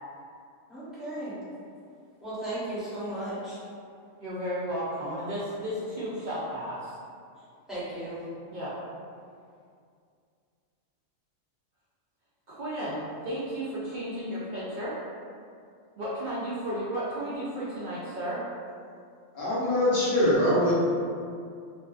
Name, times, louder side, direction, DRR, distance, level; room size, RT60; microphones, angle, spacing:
voice 1, 0.7-1.3 2.2-3.6 7.7-8.2, right 1 dB, ahead, -13 dB, 0.7 m, -35 dB
voice 2, 4.2-7.0 8.5-8.7 12.5-14.9 16.0-18.4, equal, 80° right, -10 dB, 0.4 m, -33 dB
voice 3, 19.3-20.7, left 1 dB, 55° left, -9 dB, 1.0 m, -23 dB
2.5 x 2.3 x 2.3 m, 2.3 s
omnidirectional pair, 1.4 m